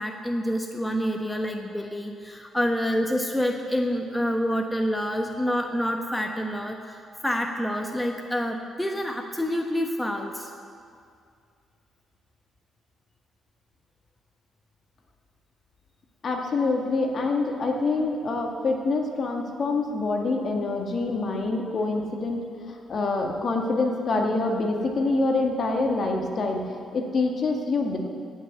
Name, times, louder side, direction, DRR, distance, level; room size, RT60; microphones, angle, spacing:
voice 1, 0.0-10.5, equal, 5° left, 3 dB, 1.0 m, -27 dB
voice 2, 16.2-22.4 22.7-28.0, left 3 dB, 50° left, 2 dB, 1.9 m, -26 dB
16.5 x 6.4 x 8.3 m, 2.3 s
cardioid pair, 90°, 0 cm